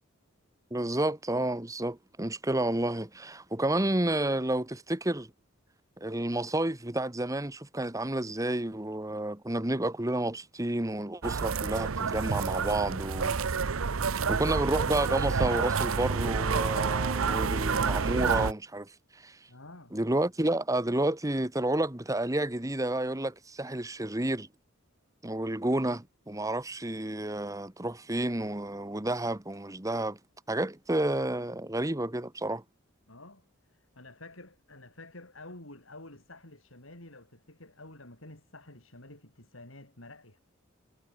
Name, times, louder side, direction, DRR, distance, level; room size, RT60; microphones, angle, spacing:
voice 1, 0.7-5.3 6.0-13.4 14.3-18.9 19.2-19.4 19.9-24.5 25.2-30.2 30.5-32.6, right 1 dB, 15° right, 1.4 m, -30 dB
sound 1, 11.2-18.5, right 5 dB, 85° right, 0.8 m, -29 dB
voice 2, 19.5-20.0 33.1-40.4, left 2 dB, 75° left, 6.9 m, -50 dB
head